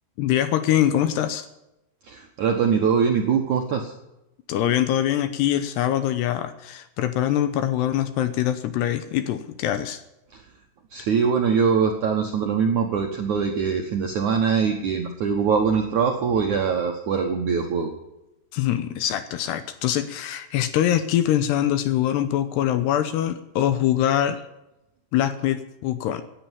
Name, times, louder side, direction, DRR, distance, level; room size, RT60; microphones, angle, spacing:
voice 1, 0.2-1.5 4.5-10.0 18.5-24.4 25.1-26.2, left 11 dB, 75° left, 11 dB, 2.7 m, -23 dB
voice 2, 2.0-3.9 10.3-10.4 10.9-17.9, right 6 dB, 70° right, 2 dB, 1.8 m, -23 dB
17.5 x 10.5 x 7.3 m, 0.90 s
omnidirectional pair, 5.4 m